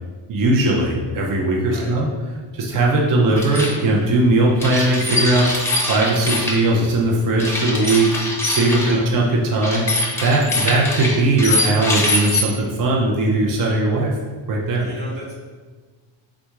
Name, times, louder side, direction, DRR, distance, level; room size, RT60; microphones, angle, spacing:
voice 1, 0.3-2.1 2.5-5.6 5.9-8.1 8.4-14.1 14.5-14.9, right 2 dB, 45° right, -2 dB, 0.7 m, -19 dB
sound 1, 3.4-3.7 4.6-6.6 7.4-8.9 9.6-12.4, left 2 dB, 5° left, 0.6 m, -23 dB
voice 2, 8.7-9.1 14.8-15.3, right 1 dB, 85° right, -4 dB, 1.4 m, -34 dB
3.6 x 2.6 x 4.5 m, 1.4 s
cardioid pair, 120°, 47 cm